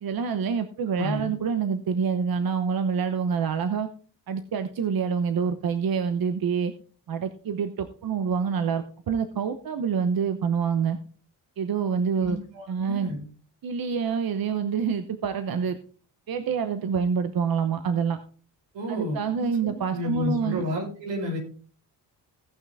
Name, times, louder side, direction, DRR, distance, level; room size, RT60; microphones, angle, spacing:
voice 1, 0.0-3.9 4.3-6.7 7.1-11.0 11.6-12.4 12.7-13.1 13.6-15.8 16.3-18.2 18.9-20.6, right 6 dB, 55° right, 9 dB, 1.0 m, -26 dB
voice 2, 0.9-1.3 12.2-13.2 18.7-21.4, left 1 dB, 85° right, 0 dB, 4.8 m, -31 dB
17.0 x 5.9 x 3.4 m, 0.40 s
cardioid pair, 85°, 42 cm